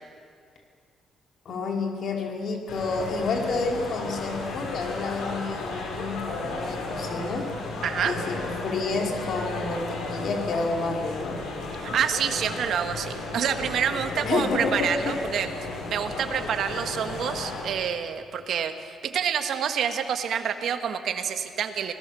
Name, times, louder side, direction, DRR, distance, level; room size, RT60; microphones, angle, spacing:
voice 1, 1.5-7.5 8.0-11.4 14.2-15.2, left 3 dB, 60° left, 1 dB, 3.9 m, -29 dB
sound 1, 2.7-17.6, left 3 dB, 80° left, 5.8 m, -34 dB
voice 2, 7.8-8.2 11.8-15.5 15.9-21.9, right 8 dB, 70° right, 7 dB, 1.7 m, -27 dB
26.5 x 18.5 x 7.0 m, 2.2 s
cardioid pair, 90°, 0 cm